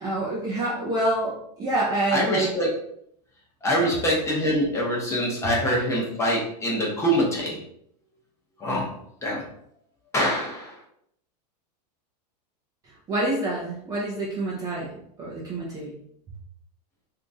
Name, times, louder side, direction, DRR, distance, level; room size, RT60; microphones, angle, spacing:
voice 1, 0.0-2.5 3.8-4.0 12.8-16.0, right 2 dB, 15° right, -5 dB, 0.6 m, -27 dB
voice 2, 2.1-2.7 3.6-7.6 8.6-8.9 9.2-9.5 10.1-10.7, equal, 15° left, -3 dB, 0.8 m, -24 dB
2.9 x 2.7 x 3.5 m, 0.69 s
supercardioid pair, 160°, 21 cm